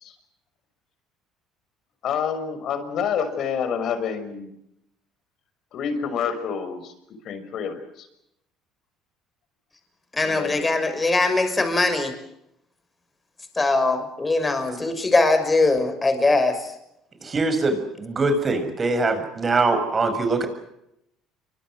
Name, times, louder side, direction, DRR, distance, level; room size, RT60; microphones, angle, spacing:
voice 1, 2.0-4.5 5.7-6.9 7.2-8.1 10.2-10.6, left 7 dB, 55° left, 11 dB, 6.1 m, -28 dB
voice 2, 10.1-12.1 13.6-16.7, left 3 dB, 20° left, 9 dB, 6.2 m, -21 dB
voice 3, 17.2-20.5, right 3 dB, 30° right, 9 dB, 6.8 m, -23 dB
29.0 x 24.5 x 6.4 m, 0.80 s
supercardioid pair, 100°, 0 cm